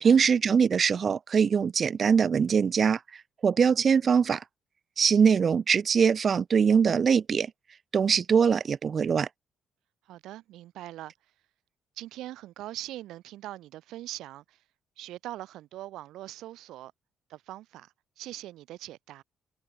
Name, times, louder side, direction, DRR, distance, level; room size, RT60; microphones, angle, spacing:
voice 1, 0.0-4.4 5.0-7.5 7.9-9.3, right 6 dB, 45° right, 0.7 m, -23 dB
voice 2, 10.1-11.1 12.0-14.6 15.0-16.9 17.3-19.2, right 14 dB, 85° right, 5.8 m, -42 dB
cardioid pair, 90°, 0 cm